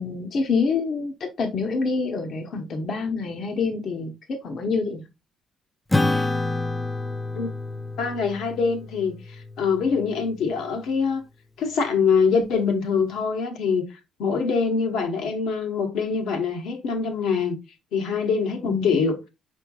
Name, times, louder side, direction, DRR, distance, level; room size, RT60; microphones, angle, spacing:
voice 1, 0.0-5.0 18.6-19.0, left 4 dB, 60° left, 0.8 m, -27 dB
Acoustic guitar / Strum, 5.9-10.7, left 2 dB, 10° left, 0.4 m, -28 dB
voice 2, 8.0-11.2 11.6-13.9 14.2-17.6 17.9-19.3, left 5 dB, 85° left, 1.1 m, -24 dB
5.1 x 4.4 x 2.3 m
cardioid pair, 80°, 0 cm